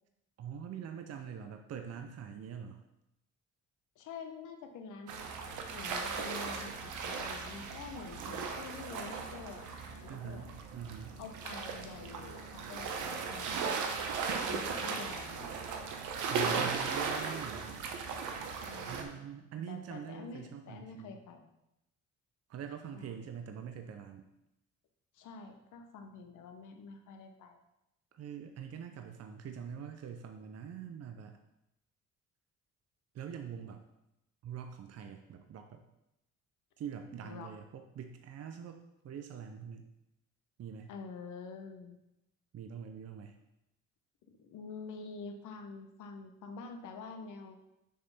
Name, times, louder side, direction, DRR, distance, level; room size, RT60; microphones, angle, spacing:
voice 1, 0.4-2.8 10.1-11.2 16.3-17.7 18.8-21.2 22.5-24.3 28.1-31.4 33.1-33.8 34.4-35.8 36.8-39.8 40.6-40.9 42.5-43.3, right 7 dB, 55° right, 6 dB, 0.7 m, -44 dB
voice 2, 4.0-5.2 5.7-10.5 11.2-13.5 14.3-15.5 18.5-19.2 19.7-21.5 22.9-23.1 25.1-27.6 37.2-37.6 40.9-42.0 44.3-47.6, left 4 dB, 80° left, 5 dB, 1.0 m, -47 dB
sound 1, 5.1-19.0, right 5 dB, 85° right, 0.9 m, -37 dB
6.8 x 3.3 x 5.6 m, 0.86 s
cardioid pair, 90°, 30 cm